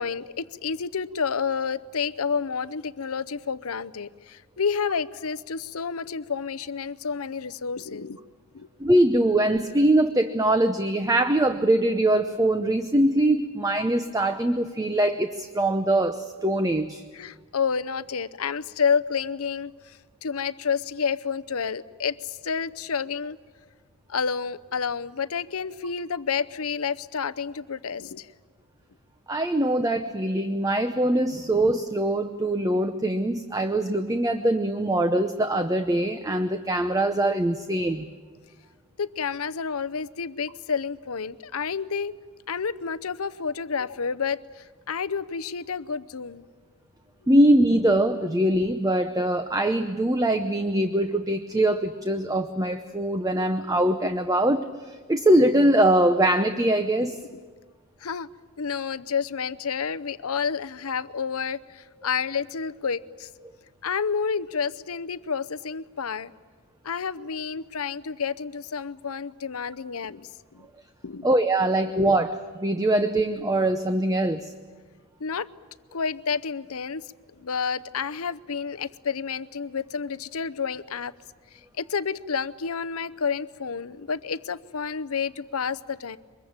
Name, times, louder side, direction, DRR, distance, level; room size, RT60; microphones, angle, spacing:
voice 1, 0.0-8.2 8.5-8.7 17.1-23.4 24.1-28.3 39.0-42.1 42.5-46.5 57.3-57.4 58.0-58.3 58.6-63.3 63.8-66.3 66.8-70.7 71.0-71.3 75.2-75.5 75.9-77.0 77.4-81.1 81.5-86.2, left 6 dB, 75° left, 14 dB, 0.7 m, -30 dB
voice 2, 8.8-17.0 29.3-38.1 47.3-57.2 71.2-74.5, right 1 dB, 15° right, 8 dB, 0.8 m, -22 dB
24.0 x 21.5 x 8.8 m, 1.5 s
head